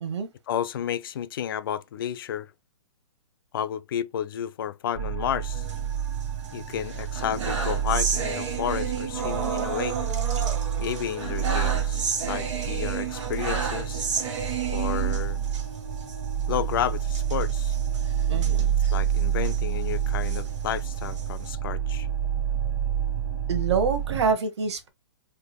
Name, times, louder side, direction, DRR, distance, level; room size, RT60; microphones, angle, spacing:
voice 1, 0.5-2.5 3.5-5.6 6.5-10.0 10.8-14.0 14.7-15.4 16.5-17.8 18.9-22.1, left 10 dB, 50° left, 0.4 m, -31 dB
sound 1, 4.9-24.3, right 9 dB, 25° right, 1.1 m, -28 dB
sound 2, 5.5-6.5 6.9-15.6 16.0-16.2 16.4-16.5 17.1-19.6 20.1-21.5, right 6 dB, 80° right, 1.6 m, -32 dB
voice 2, 18.3-18.7 23.5-24.9, right 5 dB, 65° right, 1.1 m, -26 dB
3.5 x 3.3 x 2.3 m
hypercardioid pair, 165°, 15 cm